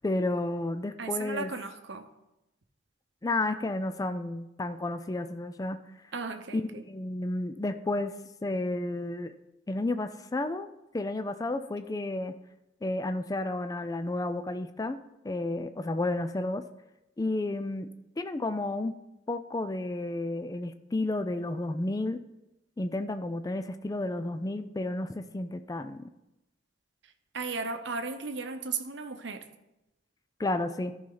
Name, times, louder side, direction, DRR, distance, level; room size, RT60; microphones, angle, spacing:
voice 1, 0.0-1.5 3.2-5.8 6.5-8.1 8.4-9.3 9.7-10.7 10.9-12.3 12.8-15.0 15.2-16.6 17.2-17.9 18.2-18.9 19.3-22.2 22.8-26.1 30.4-30.9, left 2 dB, 20° left, 10 dB, 0.4 m, -31 dB
voice 2, 1.0-2.1 6.1-6.8 27.3-29.4, right 4 dB, 70° right, 7 dB, 0.8 m, -35 dB
13.5 x 5.5 x 3.9 m, 0.92 s
head